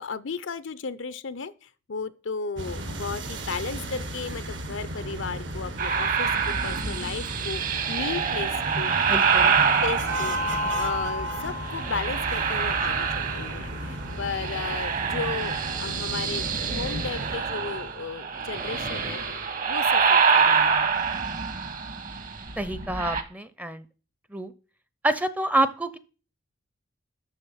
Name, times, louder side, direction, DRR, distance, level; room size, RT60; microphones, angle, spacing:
voice 1, 0.0-9.1 9.8-10.4 10.7-19.2 19.7-20.9, left 5 dB, 75° left, 0.6 m, -35 dB
sound 1, 2.5-17.4, right 1 dB, 70° right, 1.6 m, -35 dB
sound 2, 5.8-11.1 11.6-13.9 14.1-23.2, right 6 dB, 45° right, 1.2 m, -26 dB
voice 2, 9.1-9.5 22.6-23.8 24.3-24.5 25.0-26.0, right 1 dB, 10° right, 0.6 m, -27 dB
sound 3, 10.1-14.7, equal, 85° right, 1.2 m, -34 dB
7.2 x 6.4 x 7.2 m
head